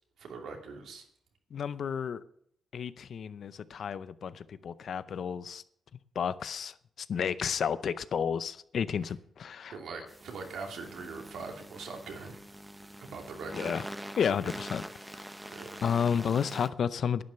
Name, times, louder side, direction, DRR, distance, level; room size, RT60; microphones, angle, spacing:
voice 1, 0.2-1.0 9.7-12.4 13.0-13.7 15.5-15.7, right 4 dB, 75° right, 2.7 m, -42 dB
voice 2, 1.5-2.2 2.7-5.6 6.2-9.8 13.5-13.8 14.2-14.8 15.8-17.2, left 7 dB, 60° left, 0.6 m, -31 dB
sound 1, 10.1-16.7, right 1 dB, 10° right, 0.9 m, -44 dB
11.0 x 9.7 x 6.8 m
cardioid pair, 100°, 0 cm